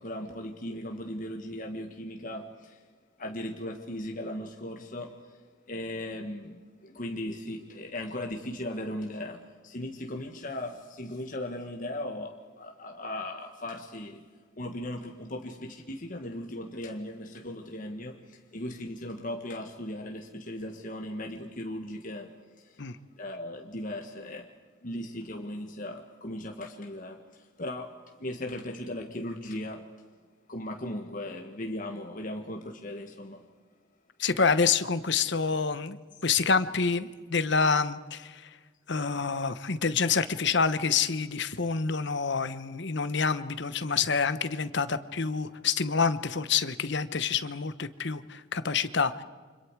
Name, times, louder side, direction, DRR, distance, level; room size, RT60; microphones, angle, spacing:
voice 1, 0.0-2.8 3.2-5.4 5.7-14.3 14.6-22.9 23.2-24.5 24.8-29.9 30.5-33.5, left 1 dB, 45° left, 1.6 m, -38 dB
voice 2, 34.2-36.0 36.2-38.4 38.9-49.2, left 5 dB, 60° left, 1.0 m, -27 dB
30.0 x 26.0 x 4.9 m
head